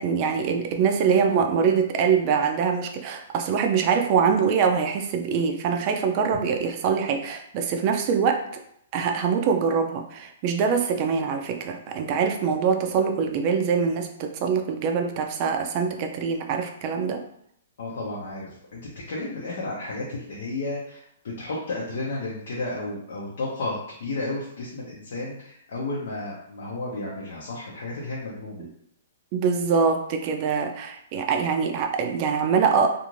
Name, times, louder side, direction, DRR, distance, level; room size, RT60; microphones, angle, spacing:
voice 1, 0.0-8.4 8.9-17.2 28.6-28.7 29.3-32.9, right 6 dB, 35° right, 4 dB, 0.4 m, -24 dB
voice 2, 17.8-21.0 21.4-28.6, left 2 dB, 70° left, -5 dB, 0.7 m, -32 dB
2.5 x 2.4 x 3.1 m, 0.70 s
hypercardioid pair, 150°, 0 cm